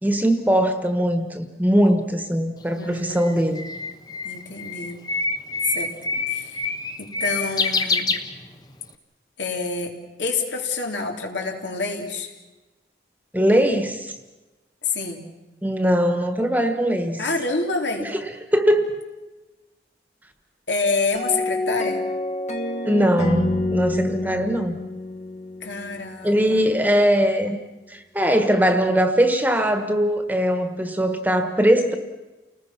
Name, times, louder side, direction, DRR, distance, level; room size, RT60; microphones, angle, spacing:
voice 1, 0.0-3.7 13.3-14.1 15.6-17.2 18.0-18.2 18.5-18.9 22.8-24.8 26.2-27.6 27.9-31.9, equal, 10° right, 7 dB, 1.5 m, -20 dB
Bird, 2.6-8.8, left 3 dB, 20° left, 1.1 m, -27 dB
voice 2, 2.8-3.7 4.2-5.0 5.7-6.0 6.3-6.7 7.0-8.1 9.4-12.3 14.8-15.2 17.2-18.1 20.7-22.0 25.6-26.8, left 3 dB, 85° left, 2 dB, 3.4 m, -27 dB
sound 1, 21.1-26.3, left 2 dB, 40° left, 1.3 m, -27 dB
30.0 x 19.5 x 6.0 m, 1.1 s
head